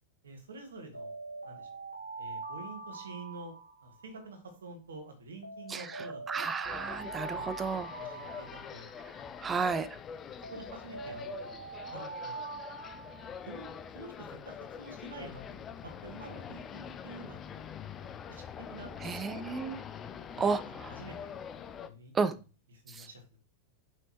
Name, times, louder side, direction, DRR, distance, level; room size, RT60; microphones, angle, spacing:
voice 1, 0.2-1.2 1.4-1.7 2.2-3.5 3.8-6.5 7.3-8.9 10.5-11.5 11.9-12.4 13.5-15.4 15.7-17.7 18.0-18.4 18.7-19.5 20.3-20.5 20.9-21.4 21.8-22.1 22.7-23.4, right 2 dB, 70° right, 5 dB, 1.8 m, -48 dB
Alarm, 0.9-4.3 5.4-9.3 10.4-13.7, right 3 dB, 85° right, 0.8 m, -43 dB
voice 2, 6.3-7.9 9.4-9.9 19.0-19.8 20.4-20.9 22.1-22.3 22.9-23.1, right 5 dB, 20° right, 14 dB, 0.6 m, -32 dB
sound 1, 6.6-21.9, left 7 dB, 25° left, 0.6 m, -44 dB
6.1 x 5.4 x 3.1 m, 0.32 s
figure-of-eight pair, 90°, 0 cm